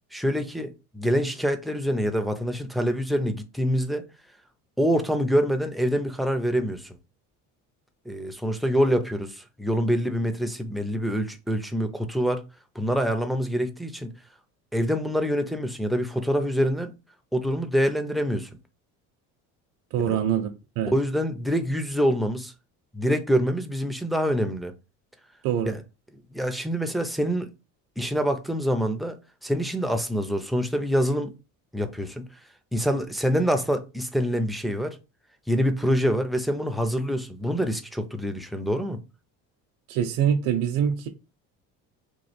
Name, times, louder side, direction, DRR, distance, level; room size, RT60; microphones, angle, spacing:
voice 1, 0.1-4.1 4.8-7.0 8.1-12.4 12.8-14.1 14.7-16.9 17.3-18.5 20.1-20.2 20.9-22.5 22.9-24.7 25.7-25.8 26.3-27.5 28.0-31.3 31.7-32.3 32.7-35.0 35.5-39.0, equal, ahead, 0.4 m, -25 dB
voice 2, 19.9-20.5 20.8-20.9 25.4-25.8 39.9-41.1, right 9 dB, 65° right, 0.6 m, -24 dB
3.1 x 2.4 x 4.2 m
cardioid pair, 115°, 35 cm